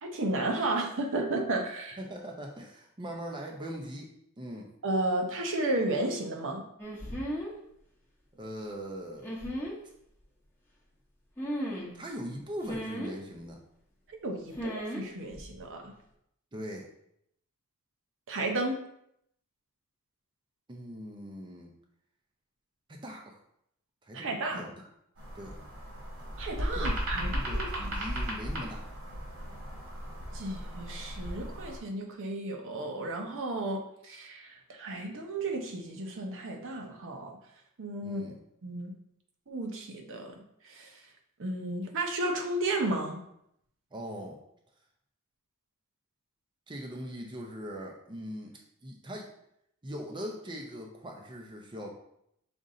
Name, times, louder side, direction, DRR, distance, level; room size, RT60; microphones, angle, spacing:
voice 1, 0.0-2.0 4.8-6.6 14.1-15.9 18.3-18.8 24.1-24.6 26.4-27.9 30.3-37.4 37.8-38.2 38.6-39.0 39.5-40.9 41.4-43.2, right 2 dB, 60° right, 3 dB, 0.7 m, -33 dB
voice 2, 2.0-4.1 4.4-4.7 8.3-9.3 11.9-13.6 16.5-16.9 20.7-21.7 22.9-23.4 24.0-24.7 25.4-25.6 26.7-28.9 38.0-38.4 43.9-44.4 46.7-48.5 48.8-49.3 49.8-51.9, equal, 20° right, 0 dB, 0.5 m, -41 dB
sound 1, 6.8-7.5 9.2-9.7 11.4-12.0 12.6-13.1 14.6-15.0 15.3-15.6, equal, 10° left, 0.9 m, -35 dB
sound 2, 25.2-31.8, equal, 85° right, 1.7 m, -36 dB
5.1 x 2.6 x 3.8 m, 0.75 s
head